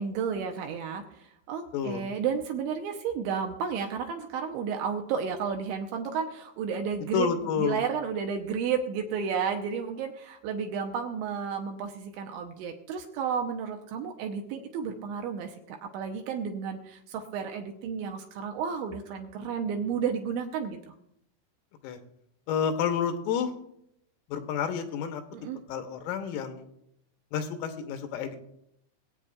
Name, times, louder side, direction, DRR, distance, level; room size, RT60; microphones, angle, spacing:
voice 1, 0.0-7.3 7.6-20.9 25.3-25.6, right 6 dB, 80° right, 3 dB, 2.8 m, -32 dB
voice 2, 1.7-2.1 7.1-7.8 21.8-22.0 22.5-23.5 24.3-25.2 25.7-26.7 27.3-28.4, left 7 dB, 90° left, 7 dB, 3.5 m, -29 dB
23.5 x 8.3 x 2.4 m, 0.76 s
omnidirectional pair, 5.9 m